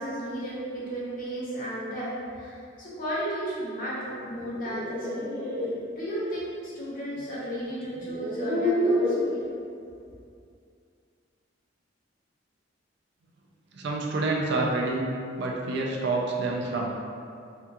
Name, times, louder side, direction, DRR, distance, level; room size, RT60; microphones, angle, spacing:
voice 1, 0.0-5.3 6.0-9.4, equal, 45° left, -7 dB, 0.9 m, -34 dB
sound 1, 4.4-5.7 7.2-7.3 7.9-9.3, left 1 dB, 5° left, 0.7 m, -28 dB
voice 2, 13.7-15.1 15.4-16.9, right 2 dB, 60° right, -1 dB, 0.4 m, -27 dB
3.5 x 2.3 x 2.8 m, 2.4 s
head